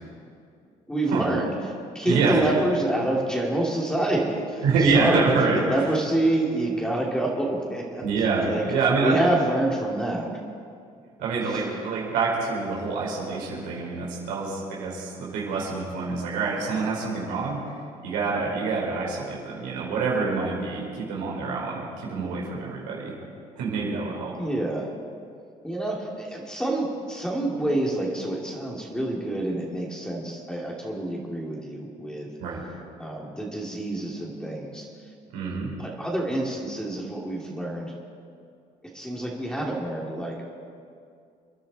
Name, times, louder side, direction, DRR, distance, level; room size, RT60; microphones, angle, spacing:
voice 1, 0.9-1.5 1.9-4.6 4.9-8.0 8.4-8.7 9.0-10.4 24.4-24.9 25.6-32.3 33.0-34.9 35.8-37.9 38.9-40.4, right 1 dB, 5° left, -3 dB, 3.1 m, -27 dB
voice 2, 2.0-2.4 4.6-5.6 8.0-9.1 11.2-17.6 18.0-23.1 23.6-24.3 32.4-32.6 35.3-35.7, right 4 dB, 90° right, -4 dB, 4.7 m, -26 dB
29.0 x 10.5 x 4.4 m, 2.3 s
cardioid pair, 95°, 14 cm